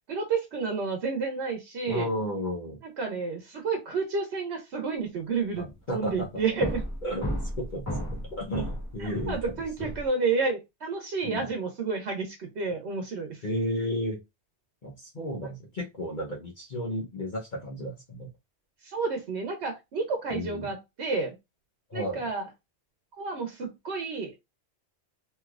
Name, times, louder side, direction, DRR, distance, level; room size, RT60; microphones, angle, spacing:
voice 1, 0.1-2.1 3.0-5.7 5.9-6.8 9.0-13.4 18.8-21.3 21.9-22.5 23.1-24.4, right 4 dB, 75° right, 3 dB, 1.0 m, -30 dB
voice 2, 1.9-2.8 5.6-6.3 7.0-7.3 7.6-9.9 11.2-11.5 13.4-14.2 14.8-18.3 20.3-20.7 21.9-22.2, equal, 50° left, -2 dB, 0.9 m, -33 dB
sound 1, 5.6-5.8 6.0-10.1, equal, 15° left, 0.8 m, -34 dB
3.2 x 2.8 x 2.3 m, 0.22 s
omnidirectional pair, 1.1 m